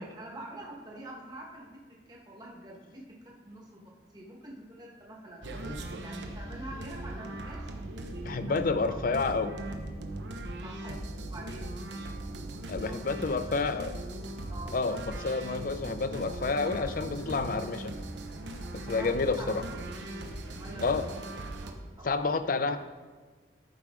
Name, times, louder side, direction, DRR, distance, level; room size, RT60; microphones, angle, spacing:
voice 1, 0.0-5.5 6.0-8.6 8.8-9.0 10.6-11.8 12.8-13.7 14.5-14.8 18.9-21.0 21.3-22.2, right 1 dB, 25° right, -2 dB, 1.2 m, -46 dB
sound 1, 5.4-21.7, right 1 dB, 80° right, 0.9 m, -39 dB
voice 2, 8.3-9.5 12.7-14.0 14.7-17.9 18.9-19.6 20.8-21.1 22.0-22.8, left 4 dB, 50° left, 11 dB, 0.5 m, -29 dB
13.0 x 4.8 x 3.7 m, 1.4 s
head